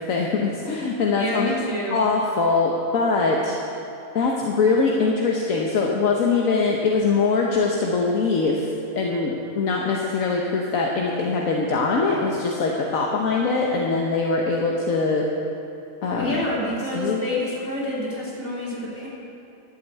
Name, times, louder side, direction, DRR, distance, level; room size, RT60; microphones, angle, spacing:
voice 1, 0.1-1.5 1.9-3.6 4.1-8.7 8.9-15.3 16.0-16.4 16.9-17.2, left 4 dB, 80° left, -1 dB, 1.4 m, -22 dB
voice 2, 1.2-2.0 16.1-19.1, left 1 dB, 55° left, -7 dB, 3.8 m, -28 dB
11.5 x 8.8 x 8.3 m, 2.9 s
omnidirectional pair, 1.4 m